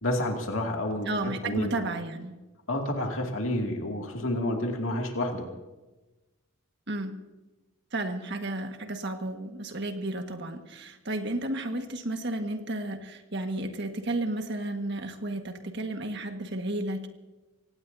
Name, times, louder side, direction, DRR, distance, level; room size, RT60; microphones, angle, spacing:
voice 1, 0.0-1.1 1.4-1.7 2.7-5.5, left 1 dB, 75° left, 1 dB, 2.5 m, -29 dB
voice 2, 1.0-2.4 6.9-7.2 7.9-17.1, right 2 dB, 55° right, 4 dB, 1.7 m, -32 dB
26.0 x 18.0 x 2.8 m, 1.1 s
head